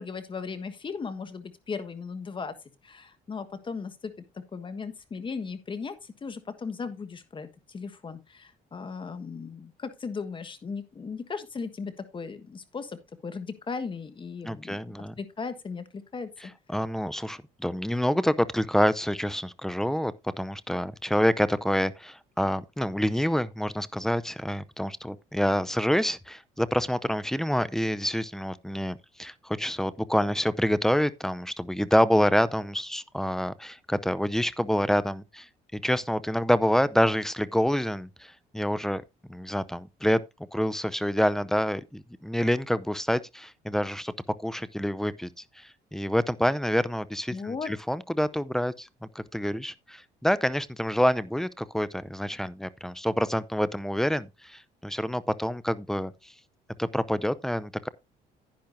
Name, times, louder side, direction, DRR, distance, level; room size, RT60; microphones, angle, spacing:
voice 1, 0.0-2.5 2.8-4.1 4.5-16.5 47.3-47.7, left 5 dB, 30° left, 1.4 m, -37 dB
voice 2, 14.4-15.1 16.7-35.5 35.7-39.0 39.3-40.2 40.5-44.1 44.4-45.3 45.6-48.9 49.1-56.3 56.8-57.9, equal, ahead, 0.6 m, -27 dB
10.5 x 10.0 x 2.6 m
cardioid pair, 110°, 17 cm